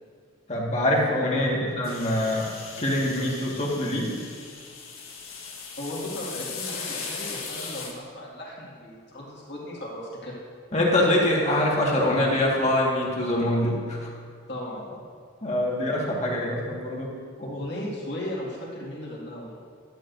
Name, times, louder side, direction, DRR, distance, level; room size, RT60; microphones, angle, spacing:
voice 1, 0.5-2.5 2.8-4.1 10.7-14.1 15.4-17.1, left 1 dB, 35° left, -3 dB, 1.7 m, -24 dB
voice 2, 1.1-1.7 5.8-10.4 14.5-15.0 17.4-19.5, left 1 dB, 55° left, -5 dB, 2.0 m, -36 dB
sound 1, 1.8-7.9, left 5 dB, 90° left, 1.6 m, -38 dB
12.5 x 11.5 x 2.6 m, 2.1 s
head